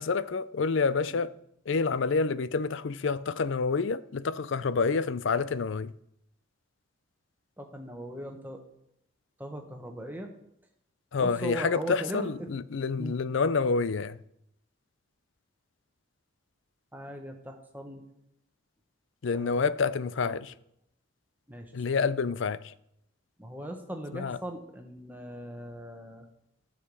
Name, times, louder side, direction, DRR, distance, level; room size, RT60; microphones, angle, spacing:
voice 1, 0.0-1.4 1.7-5.9 11.1-14.2 19.2-20.5 21.7-22.7 24.1-24.4, left 4 dB, 65° left, 0.5 m, -28 dB
voice 2, 7.6-8.6 9.4-10.3 11.2-12.5 13.0-13.2 16.9-18.0 19.3-19.6 20.0-20.3 21.5-21.7 23.4-26.3, right 1 dB, 10° right, 1.2 m, -39 dB
14.0 x 6.6 x 5.4 m
head